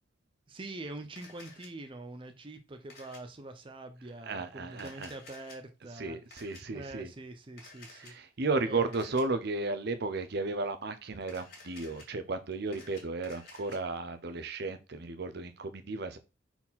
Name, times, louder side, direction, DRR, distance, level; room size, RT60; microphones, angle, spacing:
voice 1, 0.5-6.2 6.7-8.1 8.7-9.1, right 2 dB, 30° right, 0.6 m, -44 dB
Camera, 1.2-1.7 2.9-3.2 4.7-5.6 6.3-6.6 7.6-8.1 8.9-9.2 11.2-12.0 12.5-13.8, left 3 dB, 55° left, 2.6 m, -52 dB
voice 2, 4.2-5.1 6.0-7.1 7.9-16.2, right 3 dB, 60° right, 0.8 m, -34 dB
4.3 x 4.3 x 5.6 m
head